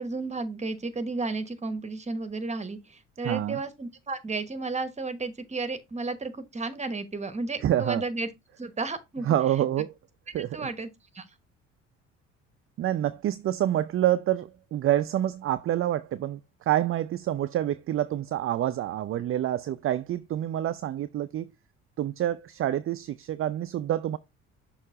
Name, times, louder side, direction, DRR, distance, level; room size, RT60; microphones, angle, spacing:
voice 1, 0.0-8.3 8.6-9.4 10.4-11.2, right 3 dB, 20° right, 1.1 m, -33 dB
voice 2, 3.2-3.6 7.6-8.0 9.2-9.9 10.3-10.7 12.8-21.5 22.0-24.2, right 12 dB, 35° right, 0.5 m, -27 dB
6.4 x 3.1 x 4.9 m
hypercardioid pair, 60°, 38 cm